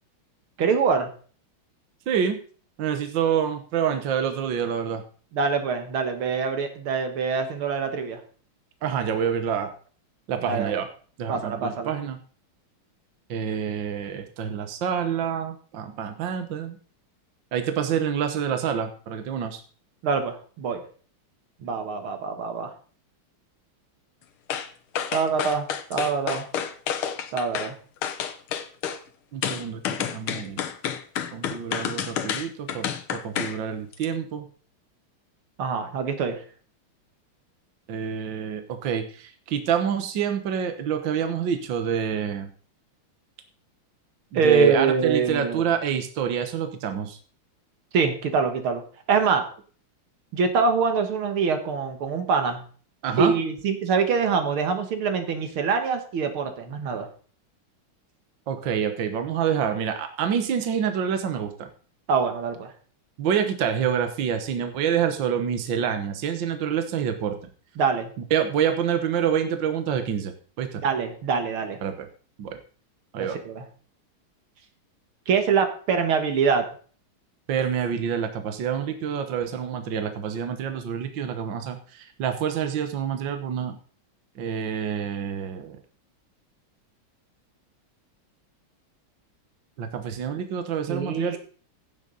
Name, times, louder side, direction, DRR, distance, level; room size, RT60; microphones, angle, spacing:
voice 1, 0.6-1.1 5.3-8.2 10.5-10.8 11.3-11.9 20.0-20.8 21.6-22.7 25.1-26.5 27.3-27.7 35.6-36.4 44.3-45.7 47.9-48.8 49.1-49.4 50.3-52.6 53.2-57.1 62.1-62.7 67.8-68.1 70.8-71.8 73.2-73.6 75.3-76.6 90.9-91.4, right 5 dB, 85° right, 6 dB, 2.3 m, -24 dB
voice 2, 2.1-2.4 2.8-5.0 8.8-9.7 10.3-10.9 11.2-12.2 13.3-16.8 17.5-19.6 29.3-30.6 31.3-32.8 33.2-34.4 37.9-42.5 44.3-47.2 53.0-53.3 58.5-61.7 63.2-67.4 68.3-70.8 71.8-72.1 72.4-72.6 73.1-73.4 77.5-83.7 84.4-85.8 89.8-91.4, right 8 dB, 65° right, 7 dB, 1.8 m, -27 dB
sound 1, 24.5-24.7 24.9-27.7 28.0-29.0 29.4-33.6 33.9-34.1, left 8 dB, 80° left, 1.8 m, -29 dB
16.0 x 7.4 x 4.0 m, 0.42 s
omnidirectional pair, 2.3 m